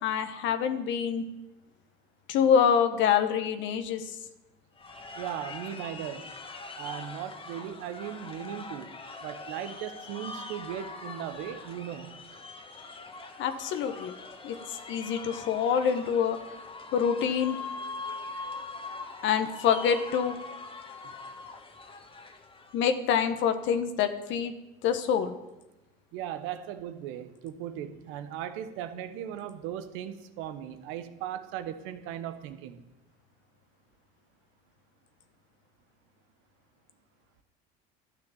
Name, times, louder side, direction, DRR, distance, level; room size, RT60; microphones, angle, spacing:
voice 1, 0.0-1.2 2.3-4.1 13.4-14.1 14.4-14.6 14.9-16.4 16.9-17.6 19.2-20.3 22.7-24.5 24.8-25.3, left 7 dB, 65° left, 8 dB, 1.1 m, -26 dB
sound 1, 4.8-22.8, left 3 dB, 25° left, 1.5 m, -42 dB
voice 2, 5.2-6.3 6.7-12.2 21.0-21.1 26.1-32.8, right 10 dB, 75° right, 10 dB, 1.0 m, -38 dB
12.0 x 7.0 x 7.1 m, 0.98 s
supercardioid pair, 80°, 21 cm